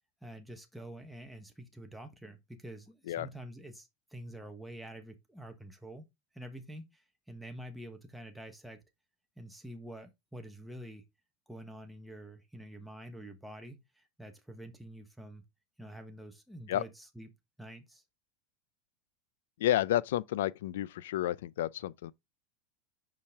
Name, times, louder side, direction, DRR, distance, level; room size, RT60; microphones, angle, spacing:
voice 1, 0.2-6.1 6.3-8.8 9.4-11.0 11.5-15.4 15.8-17.3 17.6-18.0, right 1 dB, ahead, 1.1 m, -47 dB
voice 2, 19.6-22.1, left 13 dB, 80° left, 0.4 m, -31 dB
5.5 x 5.1 x 3.5 m
supercardioid pair, 135°, 0 cm